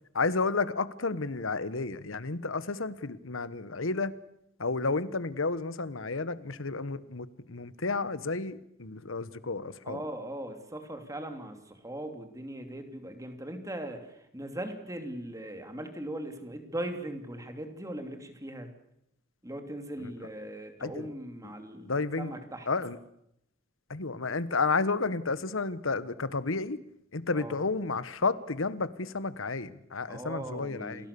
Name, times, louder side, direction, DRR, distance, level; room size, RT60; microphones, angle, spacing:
voice 1, 0.1-4.1 4.6-10.0 20.8-21.1 21.8-22.4 22.7-23.0 23.9-26.8 27.1-31.0, left 3 dB, 75° left, 15 dB, 1.2 m, -31 dB
voice 2, 9.9-18.7 19.4-22.7 27.3-27.6 30.1-31.1, right 1 dB, 15° right, 6 dB, 3.1 m, -39 dB
28.0 x 19.5 x 6.9 m, 0.78 s
head